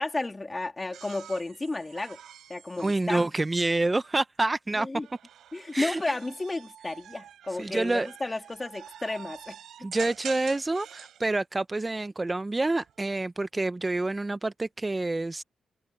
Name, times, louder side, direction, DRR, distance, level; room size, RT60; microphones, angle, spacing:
voice 1, 0.0-2.2 2.5-3.3 4.8-5.1 5.5-9.6, left 2 dB, 25° left, 3.1 m, -32 dB
sound 1, 0.9-4.2 5.0-11.2 12.7-13.2, right 10 dB, 80° right, 5.5 m, -47 dB
voice 2, 2.8-4.9 5.7-6.1 7.6-8.1 9.8-15.4, right 2 dB, 25° right, 0.6 m, -28 dB
cardioid pair, 70°, 0 cm